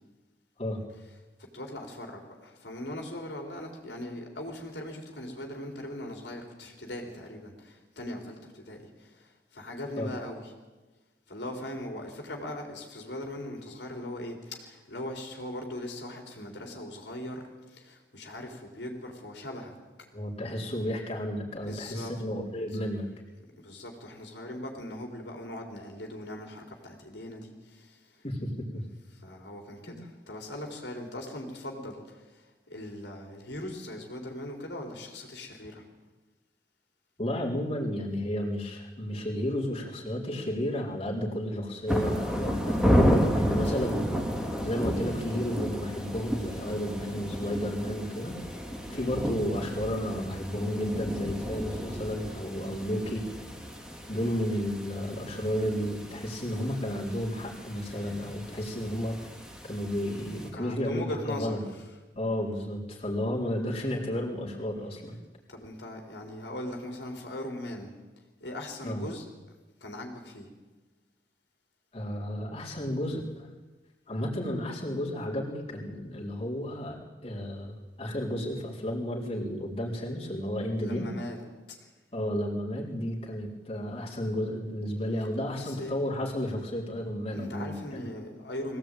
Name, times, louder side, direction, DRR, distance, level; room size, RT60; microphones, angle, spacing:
voice 1, 1.5-10.4 11.3-19.7 21.7-22.1 23.6-28.2 29.1-35.8 48.9-49.1 54.1-54.4 60.5-61.6 65.5-68.0 68.4-69.2 69.8-70.5 80.8-81.4 81.7-81.9 85.6-85.9 87.3-88.8, left 1 dB, 80° left, 2 dB, 4.0 m, -40 dB
voice 2, 20.1-23.0 28.2-28.8 29.9-30.0 37.2-42.8 43.4-44.2 44.6-48.3 48.9-53.3 54.1-59.2 59.6-61.6 62.1-65.2 68.8-69.0 71.9-73.5 74.1-81.1 82.1-88.0, equal, 35° left, -3 dB, 4.2 m, -32 dB
sound 1, 41.9-60.5, equal, 5° right, 3.0 m, -32 dB
22.0 x 17.0 x 9.1 m, 1.2 s
head